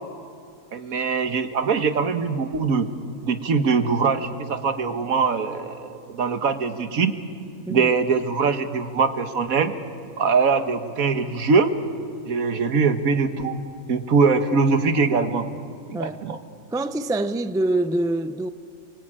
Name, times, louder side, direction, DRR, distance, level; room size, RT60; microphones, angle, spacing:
voice 1, 0.7-2.9 3.2-7.1 7.7-9.7 10.2-11.7 12.3-13.6 13.9-15.5 15.9-16.4, right 5 dB, 80° right, 1.8 m, -22 dB
voice 2, 16.7-18.5, right 2 dB, 5° right, 0.3 m, -25 dB
28.0 x 23.5 x 8.9 m
omnidirectional pair, 1.5 m